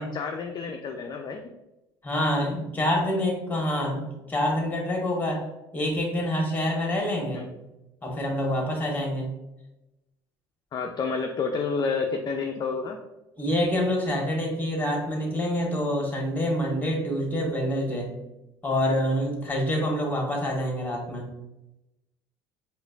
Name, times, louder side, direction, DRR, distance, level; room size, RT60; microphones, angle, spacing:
voice 1, 0.0-1.5 7.3-7.4 10.7-13.0, left 5 dB, 35° left, 3 dB, 0.4 m, -29 dB
voice 2, 2.0-5.4 5.7-7.5 8.0-9.3 13.4-18.1 18.6-21.3, left 1 dB, 15° left, 0 dB, 1.4 m, -26 dB
4.8 x 2.5 x 2.4 m, 0.95 s
hypercardioid pair, 65°, 12 cm